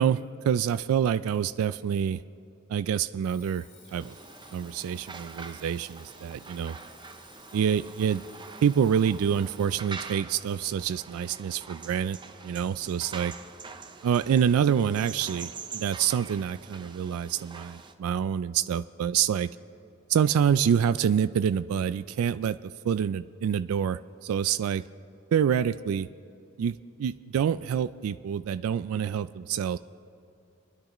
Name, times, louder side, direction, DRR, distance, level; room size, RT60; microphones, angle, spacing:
voice 1, 0.0-2.2 2.7-3.6 3.9-4.1 4.5-6.8 7.5-8.2 8.6-12.2 12.4-13.3 14.0-19.5 20.1-24.8 25.3-26.1 26.6-29.8, right 8 dB, 85° right, 15 dB, 0.3 m, -27 dB
Alarm, 3.2-9.9, left 5 dB, 50° left, 2.5 m, -56 dB
sound 1, 4.0-17.9, right 4 dB, 20° right, 0.5 m, -45 dB
29.0 x 10.5 x 3.0 m, 2.7 s
head